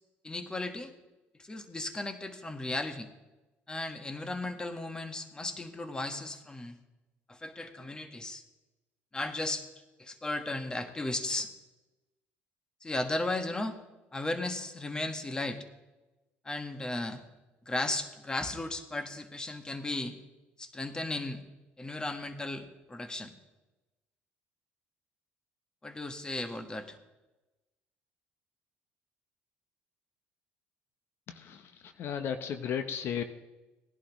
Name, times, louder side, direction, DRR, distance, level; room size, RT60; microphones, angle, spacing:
voice 1, 0.2-0.9 1.4-3.1 3.7-6.7 7.3-8.4 9.1-9.6 10.0-11.5 12.8-13.8 14.1-15.6 16.4-17.2 17.6-20.1 20.6-21.4 21.8-23.3 25.8-27.0, left 2 dB, 15° left, 8 dB, 1.4 m, -35 dB
voice 2, 31.3-33.2, left 8 dB, 55° left, 9 dB, 0.8 m, -35 dB
18.5 x 11.5 x 3.1 m, 1.1 s
supercardioid pair, 90°, 5 cm